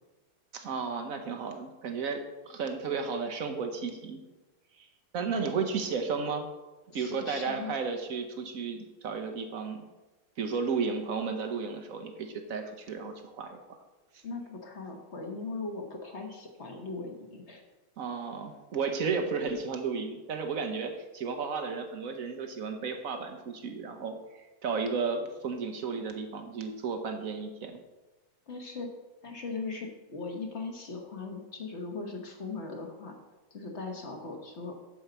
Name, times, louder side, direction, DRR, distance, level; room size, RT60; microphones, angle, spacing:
voice 1, 0.5-4.2 4.8-4.9 5.1-6.5 6.9-9.8 10.4-13.8 18.0-27.8, right 5 dB, 60° right, 5 dB, 0.9 m, -33 dB
voice 2, 6.9-7.7 14.2-17.6 28.5-28.9 29.2-33.1 33.5-34.7, left 3 dB, 40° left, 2 dB, 1.2 m, -39 dB
9.0 x 4.7 x 6.7 m, 1.1 s
omnidirectional pair, 2.3 m